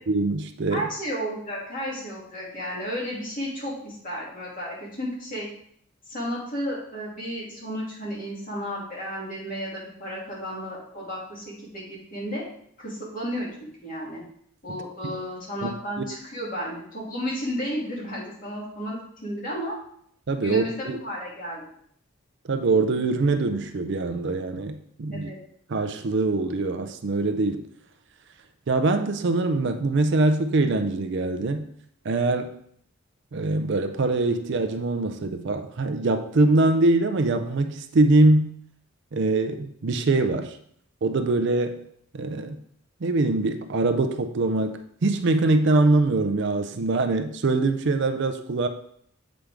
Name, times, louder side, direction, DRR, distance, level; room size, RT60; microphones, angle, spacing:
voice 1, 0.1-0.9 15.0-15.2 15.6-15.7 16.0-16.1 20.3-21.0 22.5-25.3 25.7-27.7 28.7-31.7 32.0-32.6 33.3-38.5 39.1-40.6 41.0-41.9 42.1-42.6 43.0-48.7, right 2 dB, 55° right, 8 dB, 0.5 m, -23 dB
voice 2, 0.7-5.5 6.1-12.4 12.8-14.2 14.6-19.8 20.4-21.6 25.1-25.4, equal, 40° left, -5 dB, 2.4 m, -33 dB
7.3 x 5.1 x 3.4 m, 0.67 s
head